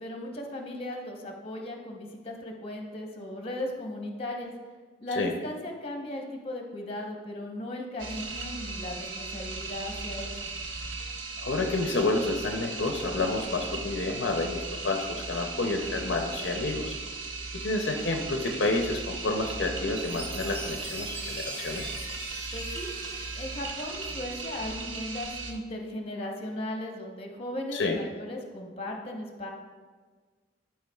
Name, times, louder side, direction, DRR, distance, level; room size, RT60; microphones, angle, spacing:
voice 1, 0.0-4.5 5.0-10.3 22.5-22.9 23.3-29.5, left 1 dB, 30° left, 1 dB, 0.9 m, -37 dB
sound 1, 8.0-25.5, right 3 dB, 85° right, 0.8 m, -37 dB
voice 2, 11.4-17.0 17.5-21.9 27.7-28.0, left 2 dB, 65° left, 3 dB, 0.6 m, -29 dB
Chime, 20.0-24.6, right 1 dB, 30° right, 1.5 m, -42 dB
11.0 x 4.6 x 2.3 m, 1.5 s
head